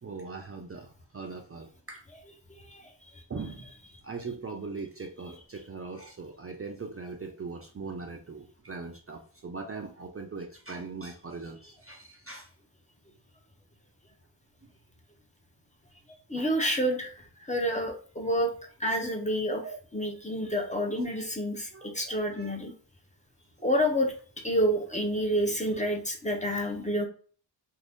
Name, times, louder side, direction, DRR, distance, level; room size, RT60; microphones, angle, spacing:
voice 1, 0.0-2.1 3.3-3.7 4.0-12.5 19.6-19.8 21.7-22.6 23.4-23.5, right 4 dB, 35° right, 2 dB, 0.4 m, -40 dB
voice 2, 16.3-17.1 17.5-18.5 18.8-19.6 19.9-21.7 21.9-22.7 23.6-24.1 24.4-27.1, equal, 15° left, 1 dB, 0.6 m, -28 dB
2.6 x 2.6 x 3.4 m, 0.42 s
wide cardioid pair, 120°, 44 cm